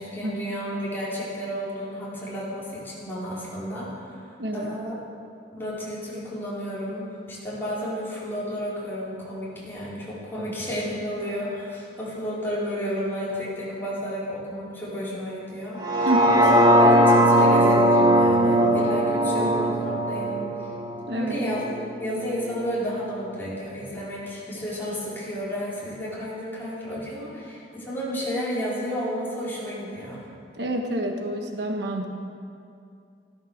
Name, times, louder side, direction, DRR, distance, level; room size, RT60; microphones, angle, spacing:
voice 1, 0.0-4.2 4.5-4.9 5.5-20.7 21.1-21.6 22.0-30.2, equal, 10° left, -8 dB, 4.5 m, -32 dB
voice 2, 4.4-4.7 10.4-10.5 16.0-16.4 19.4-19.5 21.1-21.4 30.6-32.0, right 1 dB, 75° right, 3 dB, 1.4 m, -28 dB
sound 1, 15.8-21.9 22.4-22.5, equal, 25° right, 1.3 m, -19 dB
14.0 x 12.5 x 6.6 m, 2.4 s
head